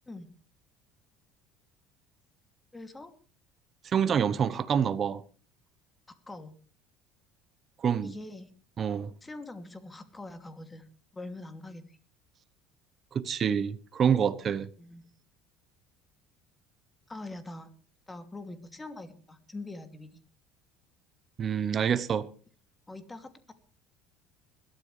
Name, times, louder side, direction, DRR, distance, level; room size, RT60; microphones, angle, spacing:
voice 1, 2.7-3.1 6.3-6.6 8.0-8.5 9.2-10.9 11.1-12.0 14.8-15.0 17.1-17.7 18.1-20.1 22.9-23.5, left 2 dB, 15° left, 2.7 m, -43 dB
voice 2, 3.9-5.2 7.8-8.2 8.8-9.1 13.1-14.7 21.4-22.3, right 7 dB, 40° right, 1.0 m, -27 dB
21.0 x 13.0 x 3.3 m
hypercardioid pair, 70°, 0 cm